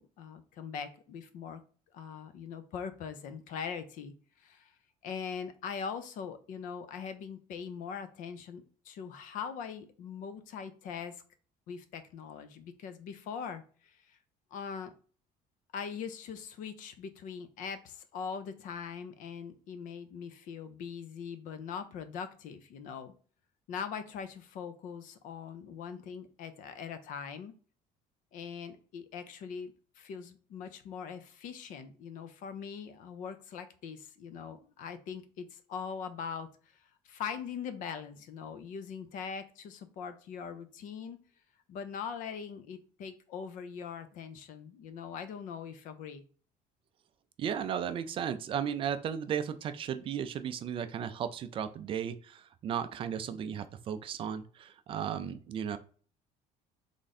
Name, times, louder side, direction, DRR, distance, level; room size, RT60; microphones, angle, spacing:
voice 1, 0.0-1.6 1.9-4.7 5.0-11.2 11.7-14.2 14.5-14.9 15.7-23.1 23.7-27.5 28.3-41.2 41.7-46.2, left 6 dB, 60° left, 10 dB, 0.6 m, -41 dB
voice 2, 47.4-55.8, right 8 dB, 35° right, 10 dB, 0.4 m, -35 dB
3.7 x 3.3 x 4.1 m, 0.42 s
cardioid pair, 170°, 16 cm